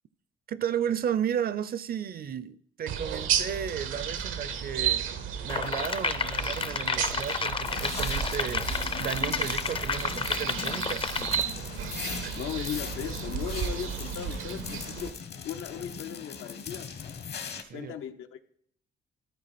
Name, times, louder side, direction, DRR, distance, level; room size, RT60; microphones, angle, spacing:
voice 1, 0.5-5.1 5.4-11.1 17.5-18.0, right 8 dB, 50° right, 0.5 m, -33 dB
sound 1, 2.9-15.1, right 8 dB, 85° right, 0.8 m, -33 dB
sound 2, 5.5-11.4, left 5 dB, 25° left, 0.5 m, -31 dB
sound 3, 7.6-17.6, left 6 dB, 55° left, 1.0 m, -40 dB
voice 2, 12.0-15.2 15.4-16.9 17.7-18.5, left 9 dB, 85° left, 0.7 m, -37 dB
13.0 x 4.5 x 4.2 m
cardioid pair, 90°, 20 cm